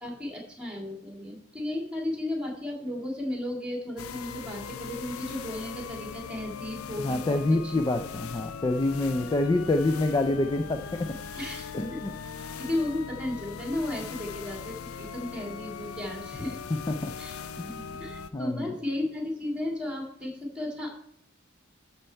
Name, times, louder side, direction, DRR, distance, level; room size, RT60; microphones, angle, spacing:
voice 1, 0.0-7.8 11.4-12.0 12.6-16.6 17.2-17.4 17.7-20.9, left 1 dB, 5° right, 0 dB, 2.0 m, -34 dB
sound 1, 4.0-18.3, left 6 dB, 90° left, 0.5 m, -40 dB
voice 2, 7.0-10.8 11.7-12.1 16.7-17.1 17.6-17.7 18.3-18.7, left 2 dB, 20° left, 7 dB, 0.3 m, -26 dB
13.0 x 4.4 x 4.4 m, 0.72 s
head